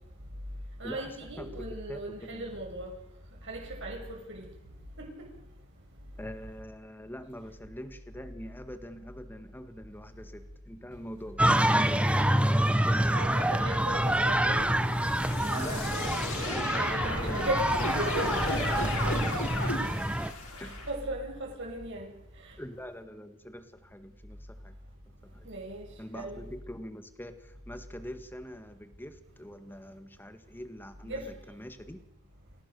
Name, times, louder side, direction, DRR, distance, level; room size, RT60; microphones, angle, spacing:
voice 1, 0.8-2.9 3.4-4.5 5.0-5.3 13.1-14.7 15.4-17.7 18.0-18.3 20.6-22.1 22.4-22.5 25.4-25.8 26.1-26.4 31.0-31.3, right 1 dB, 60° right, 8.0 m, -37 dB
voice 2, 1.4-2.5 6.2-13.6 15.5-17.5 18.3-19.9 20.6-20.8 22.6-24.4 24.6-24.7 25.2-25.5 26.0-32.0, equal, 10° left, 1.7 m, -44 dB
sound 1, 11.4-20.3, right 1 dB, 5° right, 1.0 m, -27 dB
sound 2, 13.8-20.9, left 2 dB, 85° left, 7.8 m, -35 dB
29.0 x 16.5 x 7.0 m
head